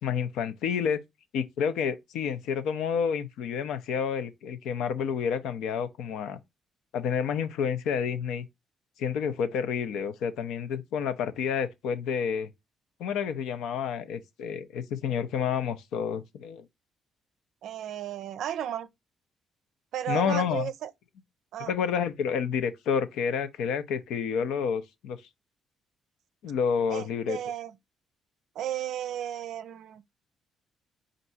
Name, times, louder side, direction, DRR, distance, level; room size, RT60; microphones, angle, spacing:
voice 1, 0.0-1.0 1.3-6.4 6.9-8.5 9.0-12.5 13.0-16.6 20.1-20.7 21.6-25.2 26.4-27.4, left 7 dB, 90° left, 0.6 m, -29 dB
voice 2, 17.6-18.9 19.9-20.9 21.5-21.7 26.9-27.7 28.6-30.0, right 10 dB, 80° right, 0.4 m, -34 dB
4.5 x 2.6 x 3.9 m
cardioid pair, 90°, 0 cm